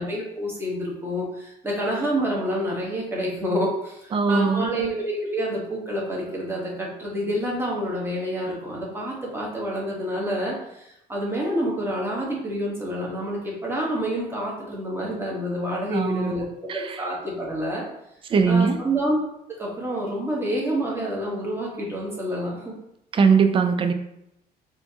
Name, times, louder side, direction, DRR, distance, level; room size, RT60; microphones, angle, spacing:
voice 1, 0.0-17.8 18.5-19.2 19.6-22.7, equal, 15° right, -4 dB, 1.3 m, -28 dB
voice 2, 4.1-4.7 15.9-16.3 16.7-17.0 18.3-18.8 23.1-23.9, right 5 dB, 30° right, 8 dB, 0.4 m, -20 dB
4.3 x 2.8 x 2.8 m, 0.82 s
cardioid pair, 110°, 17 cm